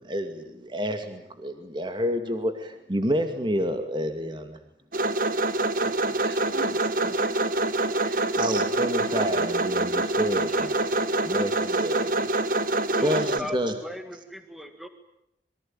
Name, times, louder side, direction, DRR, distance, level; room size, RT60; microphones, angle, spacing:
voice 1, 0.0-4.6 8.4-12.4 12.9-13.8, equal, 25° right, 7 dB, 2.3 m, -29 dB
sound 1, 4.9-13.4, right 2 dB, 50° right, 1.4 m, -25 dB
voice 2, 6.2-7.3 8.0-8.4 13.4-13.5, right 2 dB, 65° right, 9 dB, 4.2 m, -42 dB
voice 3, 12.9-13.6 13.8-14.0 14.3-14.9, left 1 dB, ahead, 7 dB, 1.8 m, -37 dB
27.0 x 23.5 x 9.0 m, 0.82 s
head